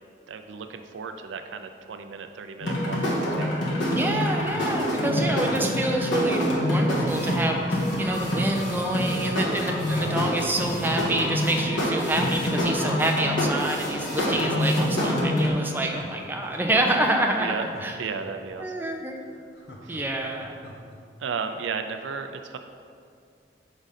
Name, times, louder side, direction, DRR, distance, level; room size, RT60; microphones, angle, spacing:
voice 1, 0.3-3.5 17.4-17.6 18.0-18.7 19.8-20.0 21.2-22.6, right 5 dB, 85° right, 7 dB, 0.4 m, -34 dB
sound 1, 2.6-15.5, equal, 90° left, 1.5 m, -26 dB
voice 2, 3.9-18.0 18.6-19.2 19.9-20.6, right 1 dB, 10° right, 2 dB, 0.5 m, -27 dB
Laughter, 4.5-6.0 6.9-9.1 9.8-11.2 11.6-11.7 12.1-14.8 15.1-15.2 15.6-18.5 18.9-19.0 19.2-21.0 21.3-21.4, equal, 60° left, 0.8 m, -42 dB
5.1 x 5.0 x 5.6 m, 2.3 s
head